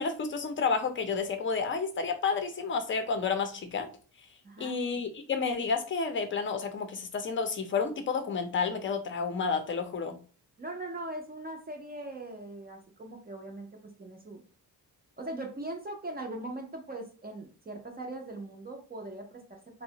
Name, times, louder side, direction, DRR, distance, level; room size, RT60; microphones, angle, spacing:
voice 1, 0.0-3.9 4.6-10.2, left 5 dB, 35° left, 7 dB, 0.5 m, -30 dB
voice 2, 10.6-13.7 14.0-14.4 15.2-19.8, right 2 dB, 25° right, 2 dB, 0.5 m, -40 dB
2.8 x 2.1 x 2.7 m, 0.36 s
cardioid pair, 115°, 37 cm